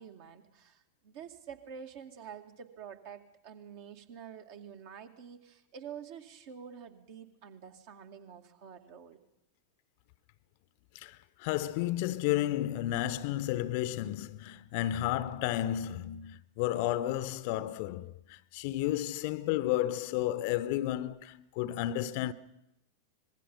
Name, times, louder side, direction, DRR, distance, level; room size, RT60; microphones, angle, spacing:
voice 1, 0.0-9.2, right 7 dB, 50° right, 2.3 m, -48 dB
voice 2, 10.9-22.3, left 13 dB, 45° left, 0.9 m, -32 dB
26.0 x 21.0 x 5.6 m
figure-of-eight pair, 90°, 0 cm